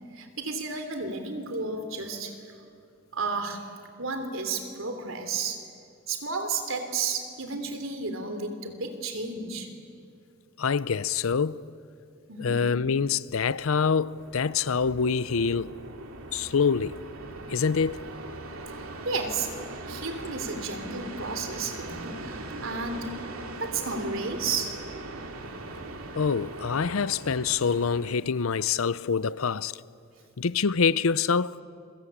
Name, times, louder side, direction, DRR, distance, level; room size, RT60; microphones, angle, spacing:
voice 1, 0.1-2.4 3.1-3.6 4.0-5.6 6.1-9.7 12.3-12.6 18.8-19.5 19.9-23.2 23.6-24.7, right 4 dB, 70° right, 3.3 m, -32 dB
voice 2, 10.6-11.6 12.4-15.7 16.3-17.0 17.5-18.1 26.1-29.7 30.4-31.6, left 5 dB, 80° left, 0.6 m, -25 dB
sound 1, 13.8-28.2, right 2 dB, 90° right, 2.6 m, -40 dB
29.0 x 23.5 x 8.7 m
head